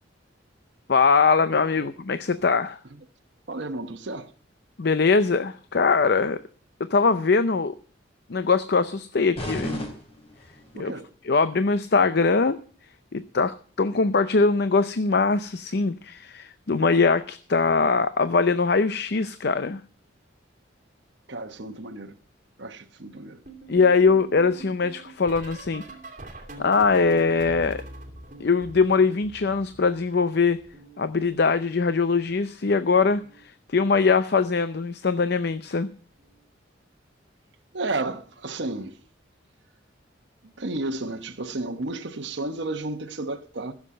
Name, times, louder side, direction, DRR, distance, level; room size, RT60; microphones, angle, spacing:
voice 1, 0.9-2.8 4.8-6.4 6.8-7.7 8.3-9.8 10.8-10.9 11.2-12.6 13.1-19.8 23.7-25.8 26.6-27.8 28.4-30.6 31.0-33.2 33.7-35.9, left 4 dB, 55° left, 0.6 m, -22 dB
voice 2, 3.5-4.3 10.7-11.1 21.3-22.1 22.6-23.4 37.7-39.0 40.6-43.7, right 2 dB, 65° right, 1.1 m, -32 dB
sound 1, 9.3-10.8, equal, 30° left, 3.9 m, -34 dB
sound 2, 23.4-30.2 30.5-32.1 33.1-33.4 33.7-34.0 35.6-35.8 36.2-36.4 38.0-38.1, right 2 dB, 40° right, 2.7 m, -44 dB
15.0 x 7.4 x 7.5 m
head